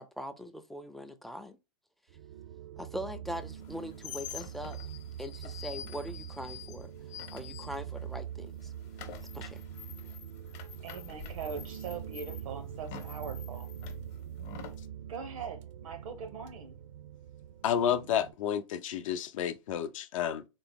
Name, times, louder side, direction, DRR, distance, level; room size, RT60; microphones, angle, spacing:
voice 1, 0.0-1.6 2.8-4.8 5.2-6.9 7.3-8.7 9.3-9.6, equal, ahead, 0.3 m, -41 dB
sound 1, 2.1-18.3, right 9 dB, 65° right, 0.5 m, -44 dB
sound 2, 3.6-8.2 8.5-14.8, left 8 dB, 45° left, 0.8 m, -47 dB
voice 2, 10.8-13.7 15.1-16.8, right 6 dB, 90° right, 0.9 m, -41 dB
voice 3, 17.6-20.5, left 9 dB, 75° left, 0.5 m, -30 dB
3.8 x 2.0 x 3.5 m
hypercardioid pair, 125°, 17 cm